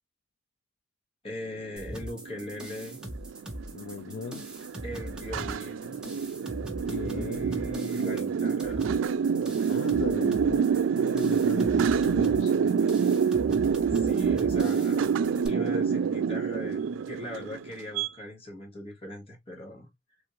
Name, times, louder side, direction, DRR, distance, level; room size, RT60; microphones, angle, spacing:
voice 1, 1.2-3.1 4.8-6.1 6.9-9.0 13.9-15.1 15.4-19.9, left 1 dB, 30° left, 1.2 m, -40 dB
sound 1, 1.7-18.1, right 6 dB, 85° right, 0.3 m, -27 dB
sound 2, 1.8-15.5, equal, 5° right, 0.8 m, -41 dB
voice 2, 3.7-4.5 6.9-7.5 9.7-10.7 11.1-12.5, left 5 dB, 75° left, 0.3 m, -38 dB
3.5 x 2.5 x 2.9 m
head